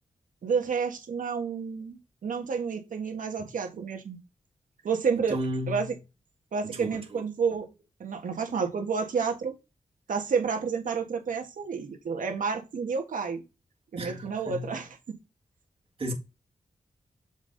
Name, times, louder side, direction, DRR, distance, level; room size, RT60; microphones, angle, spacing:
voice 1, 0.4-4.2 4.8-5.4 5.7-5.9 6.5-7.7 8.0-9.5 10.1-13.4 13.9-15.2, right 5 dB, 85° right, 1.6 m, -30 dB
voice 2, 5.3-5.9 6.6-7.2 14.0-14.8 16.0-16.1, equal, 45° right, 2.0 m, -34 dB
7.1 x 4.1 x 4.0 m
wide cardioid pair, 100°, 13 cm